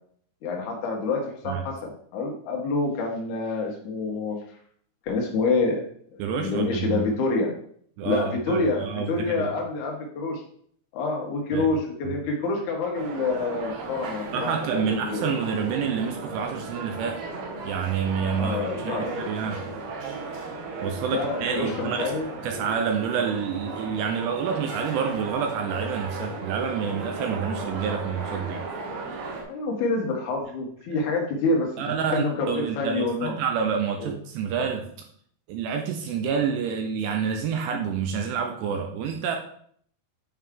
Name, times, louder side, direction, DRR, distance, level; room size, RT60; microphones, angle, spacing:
voice 1, 0.4-4.4 5.0-5.8 6.1-7.5 8.0-10.4 10.9-15.2 18.3-19.2 21.1-22.3 29.4-31.7 32.1-33.3 34.0-34.1, left 3 dB, 90° left, -1 dB, 1.7 m, -27 dB
voice 2, 6.2-7.0 8.0-9.5 11.5-11.7 12.1-12.2 14.3-17.2 17.6-19.7 20.8-22.1 22.4-28.7 30.9-31.0 31.8-34.9 35.5-39.4, right 6 dB, 80° right, 4 dB, 2.6 m, -28 dB
sound 1, 12.9-29.4, right 3 dB, 65° right, 2.8 m, -35 dB
8.7 x 4.7 x 3.6 m, 0.62 s
omnidirectional pair, 5.3 m